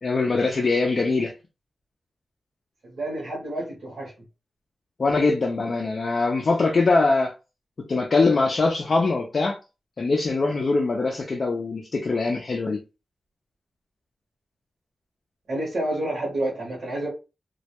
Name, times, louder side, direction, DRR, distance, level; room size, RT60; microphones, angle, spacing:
voice 1, 0.0-1.3 5.0-7.3 7.9-9.6 10.0-12.8, left 3 dB, 45° left, 0.4 m, -22 dB
voice 2, 2.9-4.1 15.5-17.1, right 1 dB, 60° right, 0.9 m, -29 dB
2.2 x 2.1 x 2.8 m
wide cardioid pair, 180°, 0 cm